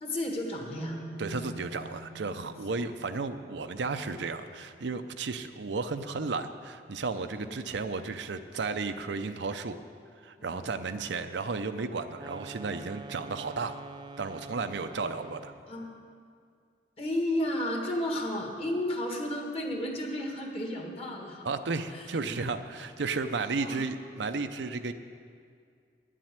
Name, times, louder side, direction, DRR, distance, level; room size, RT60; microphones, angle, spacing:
voice 1, 0.0-1.0 10.4-10.7 15.7-15.9 17.0-21.5 21.9-22.1 23.6-23.8, left 1 dB, 35° left, 1 dB, 1.6 m, -32 dB
sound 1, 0.8-4.7, right 1 dB, ahead, 0.9 m, -44 dB
voice 2, 1.2-9.8 10.2-13.8 14.2-15.5 21.4-24.9, right 4 dB, 80° right, 9 dB, 0.6 m, -33 dB
sound 2, 12.1-15.7, right 3 dB, 25° right, 0.3 m, -45 dB
9.9 x 7.6 x 9.5 m, 2.2 s
head